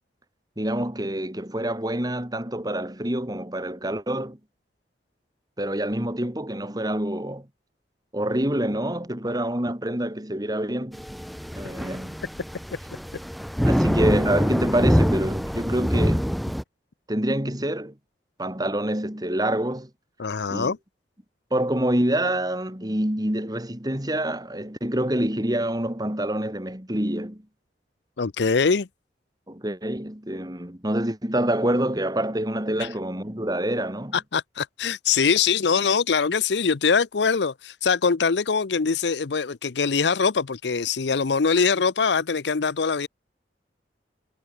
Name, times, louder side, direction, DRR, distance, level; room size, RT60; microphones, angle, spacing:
voice 1, 0.6-4.4 5.6-7.5 8.1-11.0 11.5-12.2 13.6-16.4 17.1-18.0 18.4-19.9 20.5-20.7 21.5-27.4 29.5-34.2, right 1 dB, 20° right, 3.4 m, -26 dB
sound 1, 10.9-16.6, equal, ahead, 0.8 m, -24 dB
voice 2, 20.2-20.8 28.2-28.9 32.8-32.9 34.1-43.1, left 5 dB, 75° left, 0.7 m, -23 dB
head